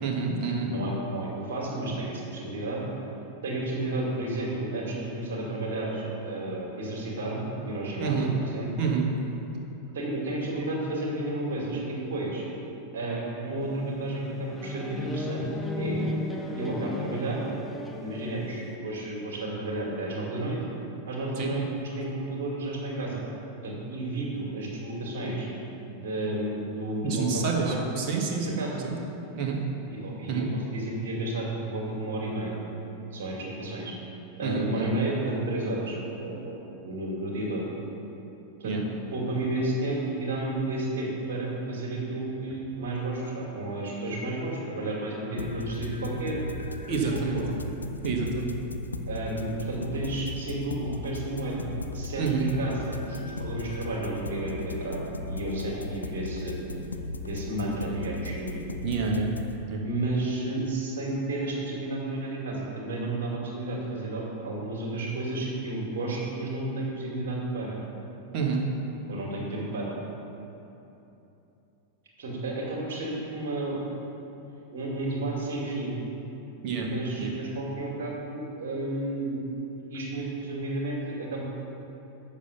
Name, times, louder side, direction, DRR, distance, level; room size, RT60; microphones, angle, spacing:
voice 1, 0.0-0.7 8.0-8.3 8.8-9.0 21.4-21.5 27.0-28.9 29.3-29.6 30.2-30.5 34.4-34.9 38.6-38.8 46.9-47.4 48.0-48.5 52.2-52.5 58.8-59.3 59.7-59.8 68.3-68.6 76.6-76.9 77.2-77.3, right 5 dB, 40° right, 0 dB, 1.4 m, -28 dB
voice 2, 0.6-2.8 3.4-8.7 9.9-12.4 12.9-15.5 15.8-16.0 16.6-17.4 18.0-20.6 21.1-23.2 23.6-25.5 25.9-27.8 28.4-28.8 29.9-32.6 33.1-33.9 34.4-37.7 38.6-38.8 39.1-46.4 46.9-47.5 49.1-51.7 51.9-55.0 55.3-56.6 57.3-58.7 59.8-67.8 69.1-69.9 72.2-73.8 74.7-76.0 76.8-79.4 79.9-81.4, right 2 dB, 60° right, -3 dB, 2.3 m, -32 dB
sound 1, 13.6-18.8, left 2 dB, 5° left, 0.8 m, -34 dB
sound 2, 45.4-59.5, left 2 dB, 80° left, 0.4 m, -36 dB
7.1 x 6.6 x 6.9 m, 2.9 s
figure-of-eight pair, 90°, 0 cm